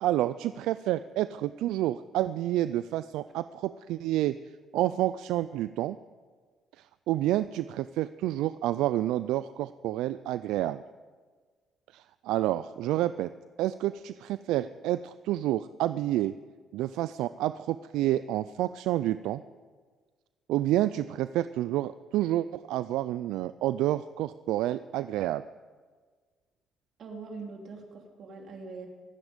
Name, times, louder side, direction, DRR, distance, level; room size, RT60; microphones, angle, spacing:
voice 1, 0.0-4.4 4.7-6.0 6.8-10.8 11.9-13.3 13.6-16.4 16.7-19.4 20.5-25.4, right 14 dB, 85° right, 14 dB, 0.3 m, -29 dB
voice 2, 27.0-28.9, right 4 dB, 55° right, 2 dB, 3.0 m, -42 dB
24.0 x 9.7 x 5.2 m, 1.5 s
cardioid pair, 90°, 0 cm